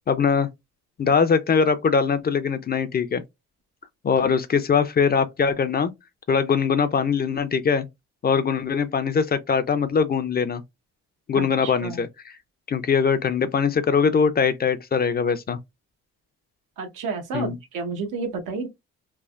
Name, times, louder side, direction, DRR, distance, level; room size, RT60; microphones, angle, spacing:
voice 1, 0.1-0.5 1.0-3.2 4.0-5.9 6.3-7.9 8.2-10.6 11.3-12.1 12.7-15.6 17.3-17.6, left 6 dB, 30° left, 0.4 m, -22 dB
voice 2, 11.3-12.0 16.8-18.7, right 4 dB, 90° right, 0.9 m, -31 dB
3.3 x 2.1 x 2.4 m
cardioid pair, 90°, 30 cm